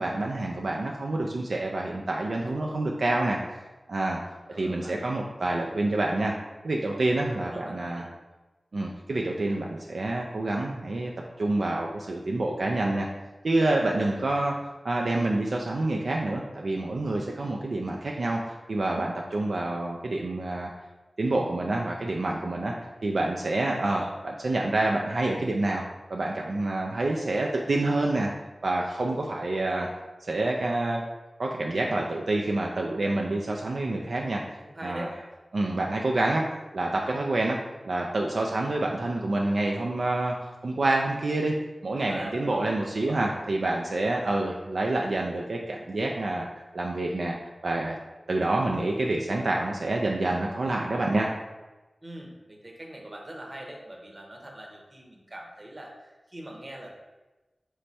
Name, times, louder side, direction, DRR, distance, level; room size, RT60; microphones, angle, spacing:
voice 1, 0.0-3.4 3.9-4.2 4.5-6.4 6.6-8.0 8.7-11.1 11.4-13.1 13.4-14.5 14.8-20.7 21.2-22.7 23.0-25.8 26.1-28.3 28.6-29.9 30.3-31.0 31.4-34.4 34.8-35.1 35.5-37.6 37.8-41.5 41.8-46.5 46.7-47.4 47.6-48.0 48.3-51.3, right 2 dB, 80° right, 0 dB, 0.3 m, -27 dB
voice 2, 2.4-2.9 4.3-5.0 7.2-8.1 13.9-14.6 23.7-24.2 34.2-35.1 41.9-43.2 52.0-56.9, right 1 dB, 45° right, 0 dB, 0.9 m, -43 dB
3.3 x 3.2 x 4.1 m, 1.1 s
wide cardioid pair, 50°, 0 cm